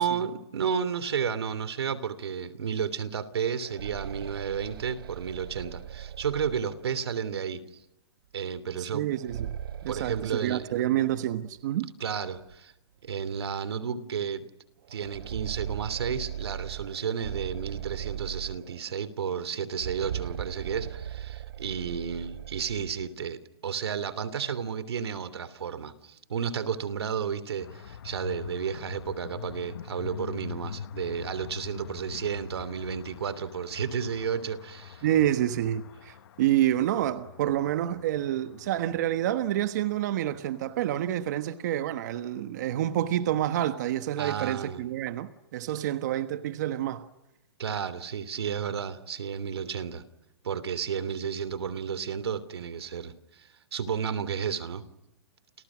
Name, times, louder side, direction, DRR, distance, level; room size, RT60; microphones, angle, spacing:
voice 1, 0.0-7.6 8.3-9.1 9.9-10.7 12.0-12.7 13.0-14.5 14.9-35.0 44.2-44.9 47.6-50.0 50.4-54.8, right 7 dB, 85° right, 3.0 m, -32 dB
sound 1, 3.6-7.2 9.0-11.2 11.5-11.6 12.5-12.6 13.1-13.2 14.8-19.0 19.7-23.1, right 10 dB, 65° right, 1.2 m, -39 dB
voice 2, 8.8-9.5 9.8-11.9 35.0-47.1, right 12 dB, 45° right, 1.3 m, -28 dB
sound 2, 27.6-41.5, left 8 dB, 65° left, 1.4 m, -44 dB
30.0 x 30.0 x 6.2 m
hypercardioid pair, 165°, 13 cm